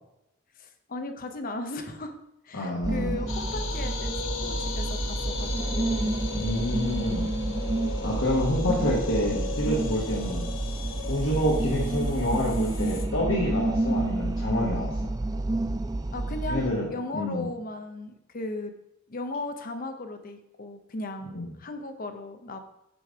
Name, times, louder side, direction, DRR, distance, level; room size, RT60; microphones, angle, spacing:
voice 1, 0.6-2.2 2.4-6.2 8.5-8.9 9.3-9.5 13.8-14.0 16.1-18.7 19.1-22.6, left 2 dB, 45° left, 7 dB, 0.7 m, -36 dB
voice 2, 2.5-3.1 6.3-7.3 8.0-10.5 11.1-15.1 16.5-16.9 17.1-17.5 21.3-21.5, left 1 dB, 90° left, -5 dB, 1.3 m, -28 dB
sound 1, 2.8-16.7, right 2 dB, 20° right, 0.4 m, -29 dB
sound 2, 3.3-13.0, left 4 dB, 75° left, 0.9 m, -37 dB
6.1 x 5.2 x 4.7 m, 0.89 s
head